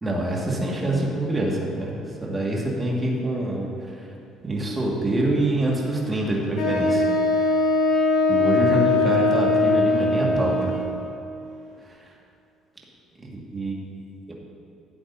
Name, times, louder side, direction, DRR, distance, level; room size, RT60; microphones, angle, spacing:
voice 1, 0.0-3.7 4.4-7.6 8.3-10.8 13.2-14.0, right 1 dB, 20° right, -3 dB, 1.8 m, -26 dB
Wind instrument woodwind instrument, 6.6-11.0, left 2 dB, 75° left, 2.0 m, -21 dB
12.5 x 8.4 x 2.7 m, 2.7 s
supercardioid pair, 80°, 0 cm